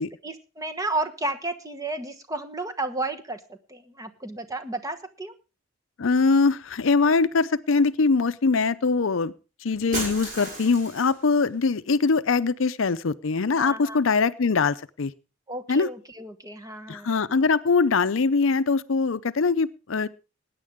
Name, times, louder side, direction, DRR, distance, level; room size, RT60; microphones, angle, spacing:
voice 1, 0.2-5.3 13.5-14.0 15.5-17.2, right 2 dB, 15° right, 6 dB, 1.2 m, -32 dB
voice 2, 6.0-9.3 9.6-15.1 15.7-15.9 16.9-20.1, left 4 dB, 70° left, 14 dB, 0.6 m, -22 dB
Shatter, 9.9-11.3, right 2 dB, 40° right, 6.8 m, -34 dB
20.5 x 9.5 x 3.6 m, 0.32 s
head